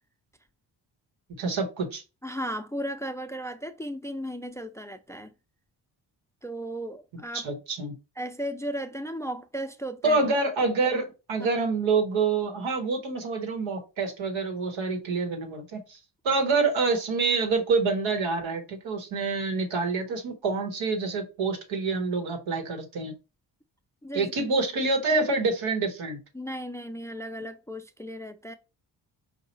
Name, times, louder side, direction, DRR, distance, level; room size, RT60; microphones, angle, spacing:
voice 1, 1.3-2.0 7.3-7.9 10.0-16.0 16.2-23.1 24.1-26.2, right 4 dB, 80° right, 1.3 m, -27 dB
voice 2, 2.2-5.3 6.4-7.5 8.2-10.2 11.4-11.5 24.0-24.3 26.3-28.5, equal, 5° left, 0.4 m, -35 dB
4.7 x 2.4 x 4.1 m
supercardioid pair, 55°, 46 cm